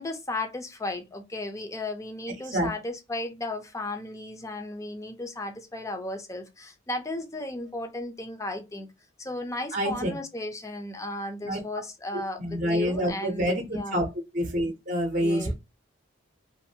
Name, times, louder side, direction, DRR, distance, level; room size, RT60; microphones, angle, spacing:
voice 1, 0.0-8.9 9.2-14.0 15.2-15.5, left 2 dB, 15° left, 0.5 m, -35 dB
voice 2, 9.7-10.2 11.4-11.6 12.4-14.1 14.3-15.5, equal, 40° right, 0.6 m, -27 dB
2.6 x 2.5 x 2.7 m
head